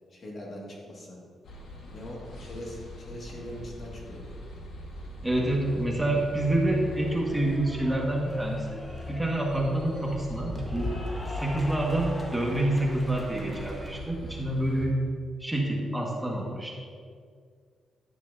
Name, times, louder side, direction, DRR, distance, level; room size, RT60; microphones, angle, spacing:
voice 1, 0.1-1.2 1.9-4.3 5.5-5.7, equal, 50° left, -2 dB, 2.1 m, -41 dB
sound 1, 1.4-14.9, left 1 dB, 80° left, 1.6 m, -41 dB
voice 2, 5.2-8.8 9.1-10.9 11.3-15.0 15.4-16.7, right 1 dB, 10° right, -2 dB, 1.7 m, -27 dB
Cheering / Applause, 6.3-14.0, left 1 dB, 20° left, 1.5 m, -41 dB
10.5 x 10.0 x 2.8 m, 2.1 s
cardioid pair, 85°, 0 cm